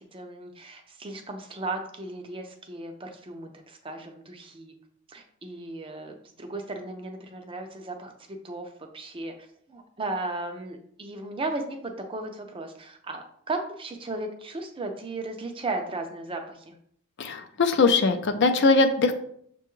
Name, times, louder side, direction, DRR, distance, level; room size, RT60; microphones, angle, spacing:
voice 1, 0.1-4.7 5.1-8.1 8.4-9.3 9.7-16.7, right 2 dB, 25° right, 4 dB, 0.4 m, -35 dB
voice 2, 17.2-19.1, left 3 dB, 55° left, 7 dB, 0.4 m, -21 dB
6.6 x 2.3 x 3.0 m, 0.65 s
head